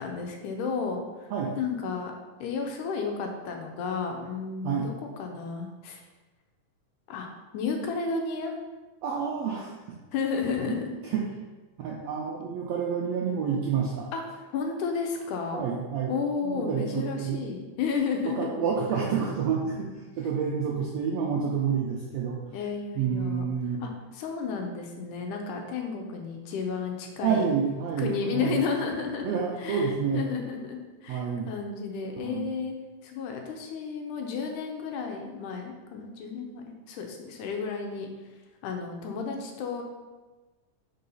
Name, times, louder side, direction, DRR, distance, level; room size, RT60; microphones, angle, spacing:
voice 1, 0.0-1.3 1.6-2.1 2.4-4.9 5.2-6.0 7.1-7.3 7.5-8.5 10.1-10.9 14.1-14.2 14.5-15.6 16.1-18.5 22.5-23.5 23.8-27.4 28.0-29.3 29.6-32.8 33.0-38.1 38.6-39.8, left 5 dB, 80° left, 2 dB, 2.1 m, -32 dB
voice 2, 9.0-9.7 10.7-10.8 11.0-11.2 11.8-14.1 15.5-16.1 16.4-17.4 18.2-22.4 23.0-23.8 27.2-28.6 29.2-30.2 31.1-31.5 32.2-32.5, right 6 dB, 85° right, -3 dB, 1.5 m, -29 dB
4.7 x 4.2 x 5.3 m, 1.2 s
omnidirectional pair, 3.8 m